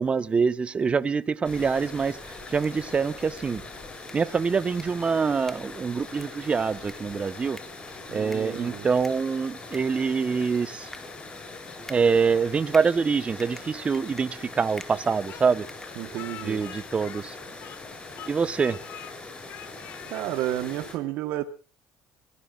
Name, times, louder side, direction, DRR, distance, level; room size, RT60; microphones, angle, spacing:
voice 1, 0.0-3.6 4.1-7.6 8.1-10.9 11.9-15.7 16.4-17.4 18.3-18.8, right 5 dB, 30° right, 1.1 m, -25 dB
sound 1, 1.4-21.0, left 3 dB, 30° left, 7.0 m, -42 dB
sound 2, 4.0-16.5, left 1 dB, 10° left, 2.0 m, -51 dB
voice 2, 8.1-8.9 15.9-16.7 20.1-21.4, right 13 dB, 70° right, 1.3 m, -31 dB
Speech, 15.3-17.9 18.1-19.1 19.5-20.3, left 11 dB, 60° left, 1.4 m, -44 dB
25.5 x 18.0 x 2.5 m
supercardioid pair, 80°, 4 cm